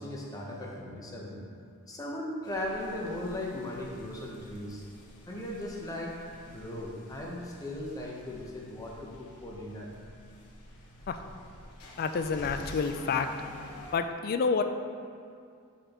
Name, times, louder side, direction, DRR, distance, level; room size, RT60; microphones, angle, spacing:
voice 1, 0.0-1.5 1.9-4.8 5.3-6.1 6.5-9.9, left 1 dB, 15° left, -3 dB, 0.9 m, -38 dB
sound 1, 2.4-13.9, left 1 dB, 90° left, 1.0 m, -49 dB
voice 2, 12.0-13.3 13.9-14.6, left 5 dB, 45° left, 8 dB, 0.3 m, -28 dB
10.0 x 4.3 x 3.0 m, 2.3 s
head